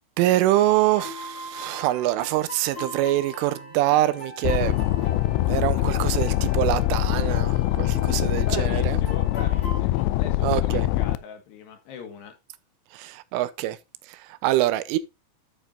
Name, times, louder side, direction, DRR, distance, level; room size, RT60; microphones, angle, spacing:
voice 1, 0.2-4.9 5.5-9.0 10.4-10.9 12.9-13.8 14.1-15.0, right 15 dB, 85° right, 3.2 m, -24 dB
sound 1, 0.5-9.8, equal, 20° left, 3.7 m, -39 dB
sound 2, 4.4-11.2, left 15 dB, 85° left, 2.5 m, -23 dB
voice 2, 8.4-12.3, left 6 dB, 65° left, 3.5 m, -40 dB
11.0 x 8.4 x 2.6 m
omnidirectional pair, 5.7 m